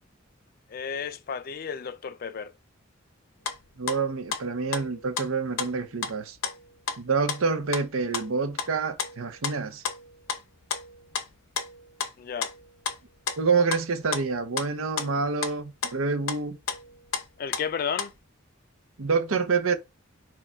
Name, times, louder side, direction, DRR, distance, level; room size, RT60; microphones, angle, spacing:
voice 1, 0.7-2.5 12.2-12.5 17.4-18.1, left 6 dB, 45° left, 0.3 m, -32 dB
sound 1, 3.4-8.7 9.0-12.1 12.4-13.0 13.3-18.2, left 6 dB, 85° left, 0.7 m, -33 dB
voice 2, 3.8-6.4 7.0-9.8 13.4-16.6 19.0-19.8, right 4 dB, 90° right, 0.7 m, -27 dB
4.6 x 2.3 x 4.3 m
head